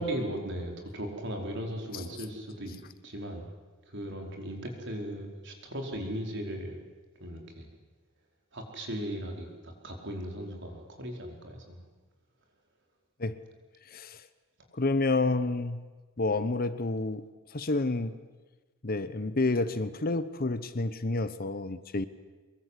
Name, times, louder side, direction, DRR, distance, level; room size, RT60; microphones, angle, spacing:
voice 1, 0.0-2.7 3.0-3.5 3.9-6.8 7.2-7.7 8.5-11.8, right 1 dB, 55° right, 2 dB, 4.9 m, -37 dB
voice 2, 13.9-14.2 14.7-15.9 16.2-17.2 17.5-18.2 18.8-22.1, left 2 dB, 45° left, 13 dB, 1.0 m, -29 dB
24.5 x 22.5 x 8.3 m, 1.3 s
head